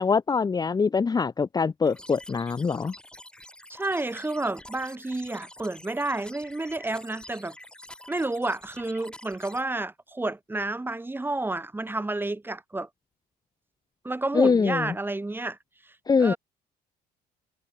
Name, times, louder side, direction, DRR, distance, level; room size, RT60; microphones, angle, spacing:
voice 1, 0.0-2.9 14.3-14.9 16.1-16.3, left 5 dB, 25° left, 1.0 m, -23 dB
sound 1, 1.8-9.6, left 1 dB, 5° left, 6.6 m, -47 dB
voice 2, 3.7-7.6 8.1-12.9 14.0-15.6 16.2-16.4, right 2 dB, 10° right, 5.1 m, -30 dB
cardioid pair, 110°, 17 cm